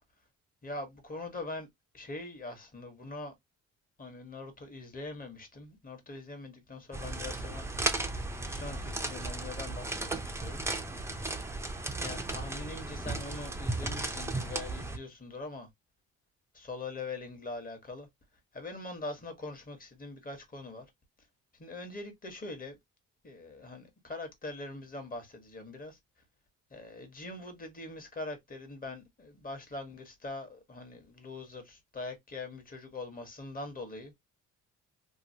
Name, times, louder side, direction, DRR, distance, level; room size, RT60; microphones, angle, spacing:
voice 1, 0.6-1.7 1.9-3.3 4.0-7.7 8.1-10.6 12.0-15.7 16.5-18.1 18.5-20.8 21.6-22.8 23.2-26.0 26.7-34.1, left 2 dB, 30° left, 1.3 m, -42 dB
sound 1, 6.9-15.0, right 2 dB, 10° right, 0.6 m, -35 dB
3.0 x 2.3 x 2.7 m
cardioid pair, 90°, 30 cm